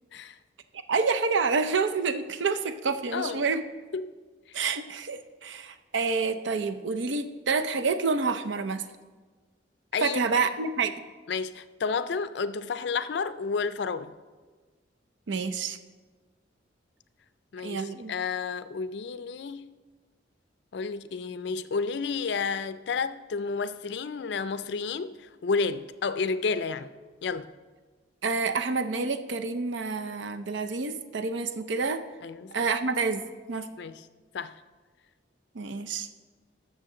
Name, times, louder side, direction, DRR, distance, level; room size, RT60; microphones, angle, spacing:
voice 1, 0.9-3.6 4.5-8.8 10.0-10.9 15.3-15.8 17.6-18.1 28.2-32.0 32.5-33.7 35.5-36.1, right 4 dB, 75° right, 9 dB, 0.6 m, -28 dB
voice 2, 3.1-3.5 3.9-4.1 4.5-4.6 9.9-10.4 11.3-14.1 17.5-19.7 20.7-26.9 27.2-27.5 32.2-32.6 33.8-34.1 34.3-34.5, left 5 dB, 60° left, 13 dB, 0.4 m, -31 dB
14.0 x 6.4 x 3.8 m, 1.4 s
head